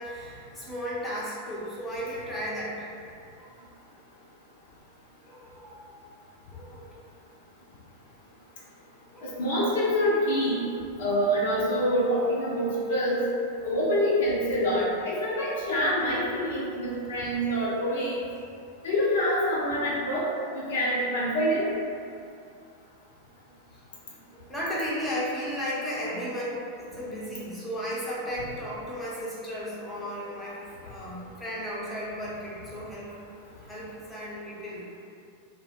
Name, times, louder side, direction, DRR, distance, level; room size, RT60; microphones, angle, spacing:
voice 1, 0.0-2.9 3.4-3.5 5.2-6.1 6.5-7.0 9.1-9.6 13.6-13.8 16.6-16.7 23.7-23.8 24.3-33.2 33.6-34.8, equal, 5° left, -8 dB, 0.7 m, -35 dB
voice 2, 9.2-10.6 11.0-13.2 13.6-18.2 18.8-20.3 20.5-21.7, equal, 60° left, -6 dB, 0.6 m, -26 dB
2.1 x 2.0 x 3.4 m, 2.4 s
figure-of-eight pair, 90°, 0 cm